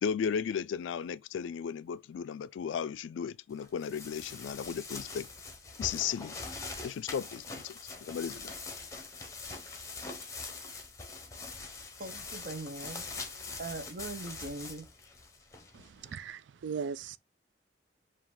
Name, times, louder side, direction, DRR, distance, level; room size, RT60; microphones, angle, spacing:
voice 1, 0.0-5.3 5.8-6.3 6.8-8.5, left 7 dB, 80° left, 0.3 m, -35 dB
sound 1, 3.6-16.1, left 3 dB, 15° left, 0.8 m, -43 dB
voice 2, 12.0-13.0 13.6-14.9, right 2 dB, 45° right, 0.7 m, -40 dB
voice 3, 15.7-17.2, right 6 dB, 75° right, 0.4 m, -39 dB
4.7 x 2.5 x 3.7 m
head